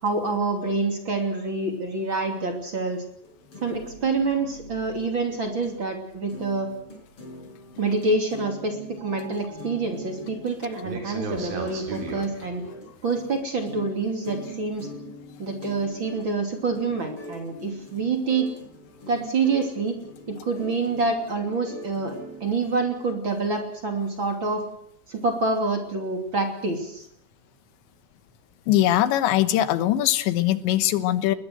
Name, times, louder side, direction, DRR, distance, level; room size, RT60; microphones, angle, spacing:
voice 1, 0.0-3.0 3.6-6.7 7.8-12.6 13.0-14.9 15.4-18.5 19.1-20.0 20.3-22.1 22.4-24.6 25.1-27.1, right 3 dB, 30° right, 4 dB, 3.1 m, -27 dB
sound 1, 3.2-5.8 6.1-22.9, equal, 30° left, 6.5 m, -43 dB
sound 2, 3.7-5.5 5.8-5.9 6.4-6.5 6.8-6.9 9.0-12.9, right 3 dB, 55° right, 5.3 m, -39 dB
voice 2, 28.7-31.4, left 13 dB, 90° left, 12 dB, 3.5 m, -21 dB
20.5 x 20.5 x 7.9 m, 0.71 s
omnidirectional pair, 5.0 m